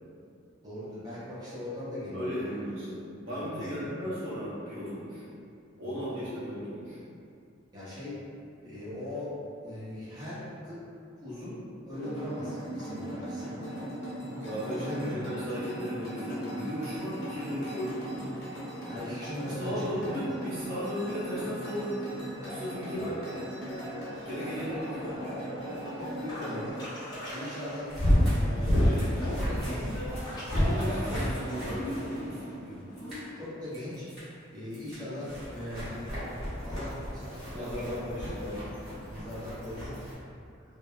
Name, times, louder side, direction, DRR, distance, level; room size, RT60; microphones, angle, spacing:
voice 1, 0.6-2.6 3.3-4.0 5.8-6.0 7.7-8.2 8.6-9.3 9.6-10.8 11.2-11.6 11.9-13.6 14.7-15.2 18.9-20.2 22.9-23.1 24.6-24.7 25.9-26.8 27.3-27.9 28.4-30.0 32.6-32.8 33.4-34.1 34.5-36.1 36.3-38.2 39.1-40.0, left 1 dB, 20° right, -11 dB, 0.6 m, -40 dB
voice 2, 2.1-5.2 5.8-7.0 14.4-18.2 19.5-22.1 22.5-23.2 24.3-25.2 28.5-29.4 29.8-30.2 30.5-32.7 37.5-38.7, equal, 85° right, -10 dB, 1.0 m, -36 dB
sound 1, 11.9-26.7, equal, 60° left, 0.7 m, -39 dB
sound 2, 22.4-33.2, equal, 20° left, 0.7 m, -40 dB
sound 3, 27.9-32.6 33.0-33.3 33.7-34.3 34.7-40.1, equal, ahead, 1.4 m, -31 dB
2.9 x 2.0 x 2.3 m, 2.4 s
head